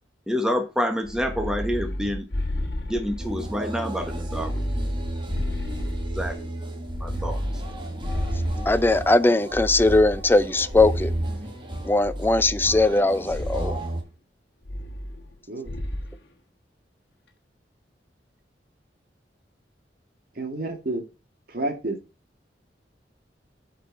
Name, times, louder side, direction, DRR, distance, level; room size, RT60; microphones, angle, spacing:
voice 1, 0.3-2.3 2.9-4.6 6.1-6.4 7.0-7.4, equal, 5° right, 1.1 m, -27 dB
sound 1, 1.0-3.5 4.0-6.4 6.9-9.0 9.5-11.4 12.0-13.0 13.3-13.8 14.7-15.4 15.7-16.1, left 1 dB, 65° left, 1.4 m, -31 dB
sound 2, 3.2-14.0, right 1 dB, 30° right, 1.6 m, -33 dB
voice 2, 8.7-11.1 11.9-13.8, left 2 dB, 15° left, 0.5 m, -20 dB
voice 3, 20.4-21.0 21.5-22.0, right 2 dB, 60° right, 2.1 m, -29 dB
8.0 x 4.6 x 4.1 m
head